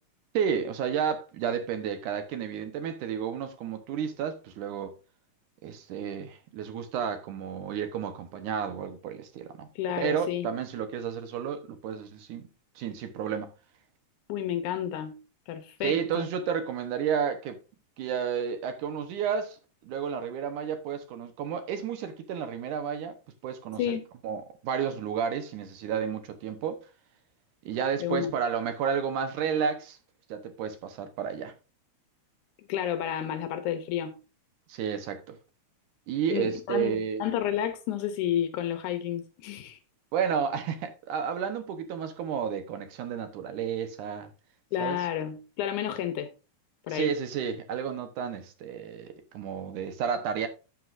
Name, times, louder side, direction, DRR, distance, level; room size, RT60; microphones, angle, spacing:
voice 1, 0.3-4.9 5.6-9.7 10.0-12.5 12.8-13.5 15.8-17.6 18.0-19.6 19.8-23.2 23.4-23.8 24.2-26.8 27.7-30.0 30.3-31.5 34.7-35.4 36.1-37.2 40.1-44.3 44.8-45.0 46.9-50.5, right 7 dB, 90° right, 2.6 m, -31 dB
voice 2, 9.8-10.5 14.3-15.2 15.5-16.3 23.8-24.0 28.0-28.3 32.7-34.1 36.3-39.8 44.7-46.3 46.9-47.1, left 10 dB, 80° left, 2.3 m, -31 dB
11.5 x 7.8 x 2.6 m
omnidirectional pair, 3.4 m